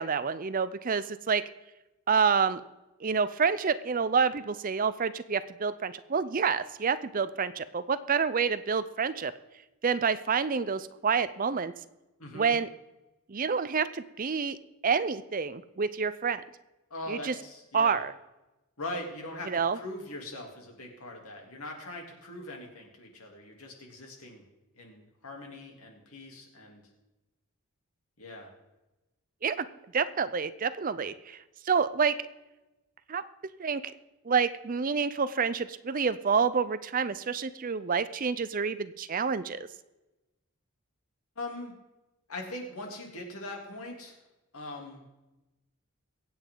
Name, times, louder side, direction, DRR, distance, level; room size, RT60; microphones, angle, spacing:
voice 1, 0.0-1.4 2.1-2.6 3.0-9.3 9.8-11.7 12.3-12.7 13.3-14.6 14.8-16.4 17.1-17.3 17.7-18.1 19.5-19.8 29.4-29.7 29.9-31.4 31.7-32.2 33.1-33.2 33.6-33.8 34.2-39.7, right 5 dB, 40° right, 14 dB, 0.5 m, -28 dB
voice 2, 12.2-12.5 16.9-18.0 18.8-24.4 24.8-26.8 28.2-28.5 41.4-41.7 42.3-44.2 44.5-45.0, left 1 dB, 75° left, 1 dB, 3.1 m, -41 dB
23.0 x 8.8 x 3.9 m, 1.0 s
head